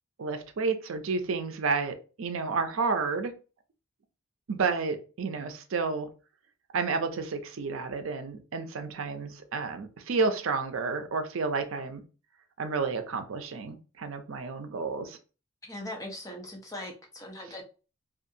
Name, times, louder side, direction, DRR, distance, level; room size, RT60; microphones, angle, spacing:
voice 1, 0.2-3.3 4.5-6.1 6.7-12.0 12.6-15.2, right 4 dB, 75° right, 7 dB, 0.5 m, -31 dB
voice 2, 15.6-17.6, left 1 dB, 15° left, 0 dB, 0.6 m, -40 dB
2.7 x 2.4 x 2.6 m, 0.34 s
head